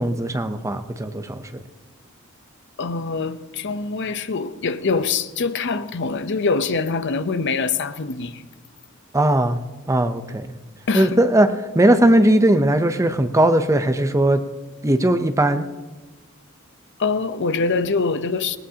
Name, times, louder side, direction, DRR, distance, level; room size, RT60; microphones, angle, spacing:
voice 1, 0.0-1.6 9.1-9.6 9.9-10.6 10.9-11.5 11.7-14.4 14.8-15.7, right 1 dB, 15° right, 0.7 m, -18 dB
voice 2, 2.8-8.4 10.9-11.2 17.0-18.6, left 4 dB, 55° left, 0.7 m, -24 dB
19.0 x 19.0 x 2.9 m
head